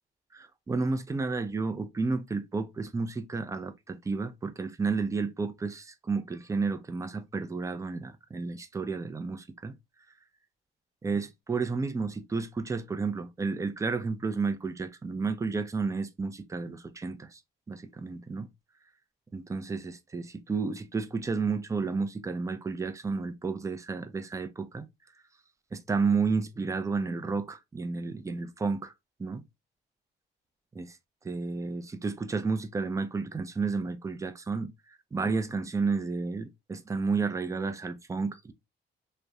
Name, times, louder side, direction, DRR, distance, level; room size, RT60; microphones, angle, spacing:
voice 1, 0.3-9.7 11.0-17.4 17.7-18.5 19.3-24.9 25.7-28.9 29.2-29.4 30.7-31.0 31.2-38.5, right 4 dB, 15° right, 0.4 m, -31 dB
2.7 x 2.1 x 2.3 m
cardioid pair, 90°, 20 cm